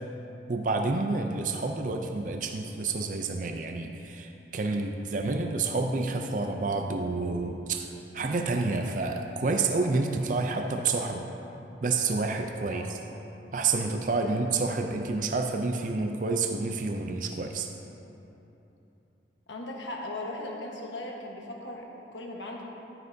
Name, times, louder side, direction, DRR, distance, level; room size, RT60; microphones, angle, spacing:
voice 1, 0.5-11.3 11.8-13.0 13.5-17.7, right 3 dB, 45° right, 4 dB, 0.5 m, -29 dB
voice 2, 14.2-14.7 19.5-22.6, left 1 dB, 75° left, -1 dB, 1.3 m, -38 dB
12.0 x 9.5 x 2.7 m, 3.0 s
head